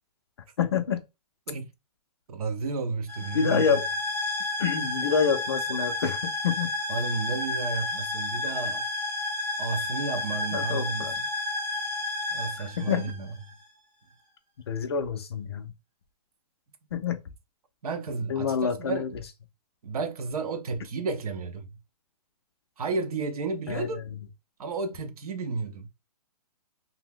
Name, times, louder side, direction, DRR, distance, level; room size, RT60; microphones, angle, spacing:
voice 1, 0.6-1.0 3.3-3.9 4.6-6.7 10.5-11.1 12.8-13.1 14.7-15.7 16.9-17.2 18.3-19.1 23.7-23.9, left 7 dB, 40° left, 0.4 m, -27 dB
voice 2, 2.3-3.7 6.9-8.9 9.6-11.3 12.3-13.3 17.8-19.1 19.8-21.7 22.8-24.0 24.6-25.9, right 4 dB, 60° right, 0.6 m, -32 dB
sound 1, 3.1-13.6, left 2 dB, 10° right, 0.5 m, -31 dB
2.7 x 2.0 x 3.6 m
hypercardioid pair, 170°, 21 cm